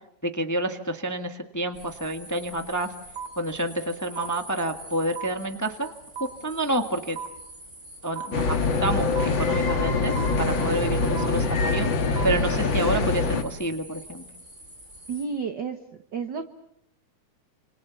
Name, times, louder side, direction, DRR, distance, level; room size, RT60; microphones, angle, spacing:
voice 1, 0.2-2.9 3.4-5.9 6.2-7.2 8.0-11.9 12.2-14.2, right 1 dB, 10° left, 6 dB, 0.7 m, -29 dB
sound 1, 1.7-15.2, right 1 dB, 25° right, 6.3 m, -46 dB
sound 2, 3.2-3.3 4.2-4.3 5.2-5.3 6.2-6.3 7.2-7.3 8.2-8.3 9.2-9.3 10.2-10.3 11.2-11.3 12.2-12.3, right 7 dB, 85° right, 3.8 m, -34 dB
sound 3, 8.3-13.4, left 3 dB, 45° left, 2.1 m, -24 dB
voice 2, 15.1-15.8 16.1-16.4, right 5 dB, 50° right, 8 dB, 1.4 m, -30 dB
29.5 x 27.5 x 7.1 m, 0.75 s
omnidirectional pair, 3.6 m